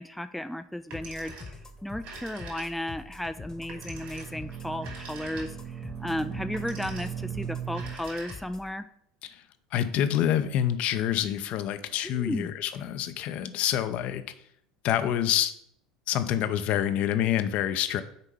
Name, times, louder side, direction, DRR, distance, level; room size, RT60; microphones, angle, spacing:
voice 1, 0.0-1.6 1.8-8.8 12.0-12.5, left 1 dB, ahead, 10 dB, 0.3 m, -34 dB
Telephone, 0.8-1.6 1.9-3.0 3.7-5.8 6.4-7.2 7.7-8.7, right 3 dB, 55° right, 2.7 m, -45 dB
sound 1, 0.9-8.7, left 3 dB, 20° left, 1.0 m, -45 dB
sound 2, 3.5-8.0, right 9 dB, 30° right, 0.6 m, -38 dB
voice 2, 9.7-14.3 14.8-15.5 16.1-18.0, left 11 dB, 50° left, 11 dB, 0.6 m, -27 dB
6.7 x 4.6 x 5.4 m, 0.73 s
figure-of-eight pair, 70°, 3 cm